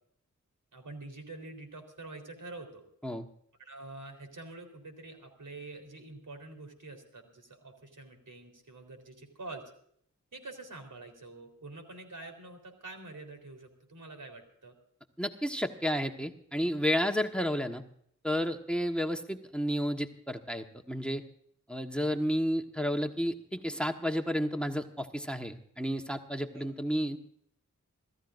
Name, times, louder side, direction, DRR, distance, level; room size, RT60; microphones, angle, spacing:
voice 1, 0.7-2.9 3.6-9.7 10.3-14.8 26.5-26.7, right 2 dB, 80° right, 5 dB, 3.9 m, -46 dB
voice 2, 15.2-17.8 18.2-21.2 21.7-27.2, equal, 5° left, 5 dB, 1.3 m, -31 dB
26.0 x 15.0 x 2.6 m, 0.67 s
wide cardioid pair, 60°, 31 cm